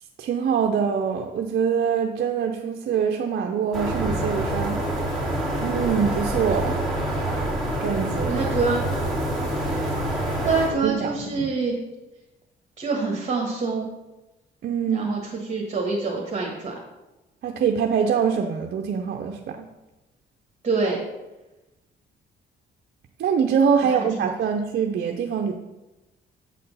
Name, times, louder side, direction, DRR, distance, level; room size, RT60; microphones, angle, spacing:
voice 1, 0.2-4.8 5.6-6.8 7.8-8.4 10.8-11.5 14.6-15.1 17.4-19.7 23.2-25.5, right 7 dB, 55° right, 2 dB, 0.6 m, -24 dB
sound 1, 3.7-10.7, right 1 dB, 5° left, 2.8 m, -26 dB
voice 2, 8.3-8.8 10.4-11.8 12.8-13.9 14.9-15.2 15.5-16.7 20.6-21.0 23.9-24.3, right 4 dB, 35° right, -2 dB, 1.6 m, -25 dB
8.1 x 4.2 x 5.5 m, 1.0 s
cardioid pair, 90°, 20 cm